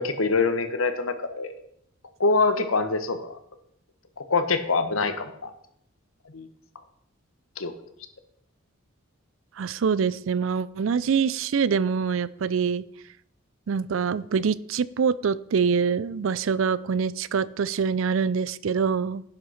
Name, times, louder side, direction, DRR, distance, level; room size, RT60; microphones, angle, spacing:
voice 1, 0.0-1.5 2.2-3.4 4.2-5.5 6.3-6.5 7.6-7.7, left 3 dB, 80° left, 9 dB, 1.2 m, -24 dB
voice 2, 9.6-12.8 13.7-19.2, right 6 dB, 70° right, 19 dB, 0.4 m, -25 dB
10.5 x 6.4 x 5.8 m, 0.72 s
head